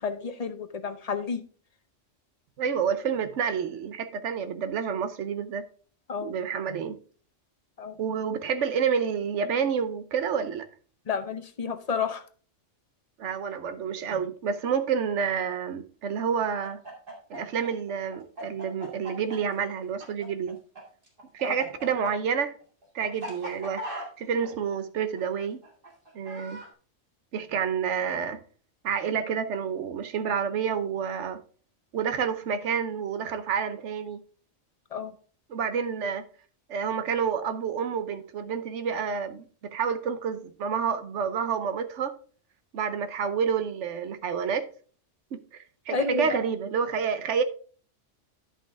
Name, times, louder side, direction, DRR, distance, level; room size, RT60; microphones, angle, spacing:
voice 1, 0.0-1.4 6.1-6.3 7.8-7.9 11.1-12.2 21.4-21.5 34.9-35.1 45.9-46.4, left 4 dB, 35° left, 0.8 m, -30 dB
voice 2, 2.6-5.6 6.2-7.0 8.0-10.6 13.2-16.8 17.3-20.6 21.3-22.5 22.9-23.8 24.2-25.6 26.1-26.6 27.3-28.4 28.8-31.4 31.9-34.2 35.5-36.2 36.7-42.1 42.7-44.7 45.3-47.4, right 7 dB, 70° right, 1.1 m, -29 dB
Chicken rooster, 16.4-20.8 21.1-26.7, equal, 45° right, 2.3 m, -40 dB
10.5 x 5.5 x 3.5 m
omnidirectional pair, 1.3 m